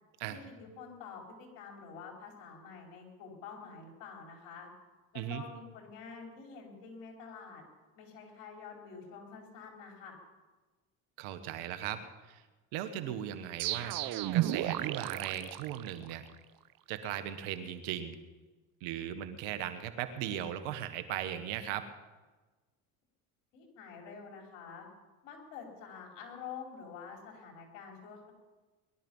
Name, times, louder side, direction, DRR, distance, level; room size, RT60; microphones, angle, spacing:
voice 1, 0.3-4.7 5.1-7.6 7.9-10.2 23.5-24.9 25.2-28.3, left 6 dB, 80° left, 1 dB, 4.7 m, -48 dB
voice 2, 11.2-12.4 12.7-14.0 14.3-16.2 16.9-18.2 18.8-21.9, right 10 dB, 80° right, 10 dB, 1.6 m, -38 dB
sound 1, 13.6-16.4, right 14 dB, 60° right, 0.9 m, -33 dB
21.5 x 12.5 x 5.5 m, 1.2 s
supercardioid pair, 80°, 39 cm